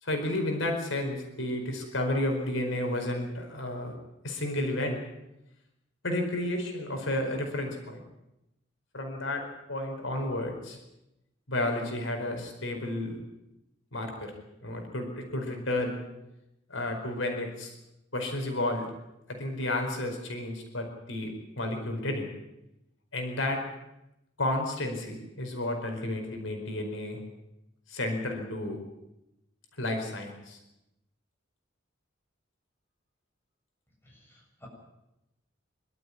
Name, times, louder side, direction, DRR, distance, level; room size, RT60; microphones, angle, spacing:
voice 1, 0.0-3.9 4.2-5.0 6.0-8.0 8.9-10.8 11.5-13.2 13.9-14.3 14.6-16.0 16.7-17.8 18.1-18.9 19.3-22.3 23.1-23.6 24.4-27.2 27.9-28.8 29.8-30.6, left 1 dB, 90° left, 3 dB, 4.7 m, -32 dB
voice 2, 34.0-34.7, left 1 dB, 10° left, -2 dB, 7.7 m, -55 dB
25.5 x 13.0 x 9.8 m, 0.90 s
head